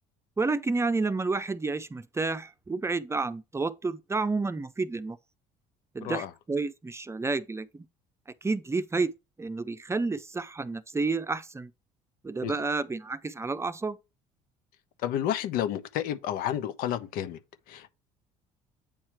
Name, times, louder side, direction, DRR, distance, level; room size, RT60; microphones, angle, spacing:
voice 1, 0.4-5.2 5.9-7.9 8.4-9.1 9.4-11.7 12.2-14.0, right 3 dB, 15° right, 0.7 m, -30 dB
voice 2, 15.0-17.4 17.7-17.9, left 11 dB, 70° left, 1.0 m, -31 dB
8.9 x 3.1 x 6.0 m
supercardioid pair, 80°, 15 cm